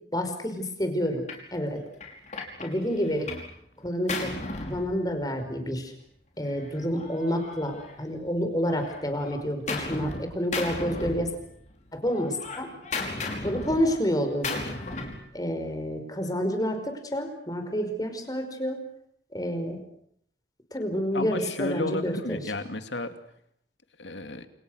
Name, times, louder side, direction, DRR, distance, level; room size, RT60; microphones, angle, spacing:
voice 1, 0.1-1.8 2.6-3.3 3.8-4.3 4.6-5.9 6.4-11.3 11.9-12.7 13.4-14.6 15.3-18.8 19.3-19.8 20.7-22.4, equal, 20° left, 7 dB, 5.4 m, -29 dB
Gunshot gunfire, 1.3-1.5 2.0-3.5 3.8-5.5 6.4-8.3 8.6-10.2 10.5-11.7 12.0-15.3, left 3 dB, 40° left, 5.7 m, -35 dB
voice 2, 21.1-23.1 24.0-24.5, left 2 dB, 80° left, 8 dB, 2.7 m, -32 dB
29.0 x 29.0 x 6.6 m, 0.70 s
head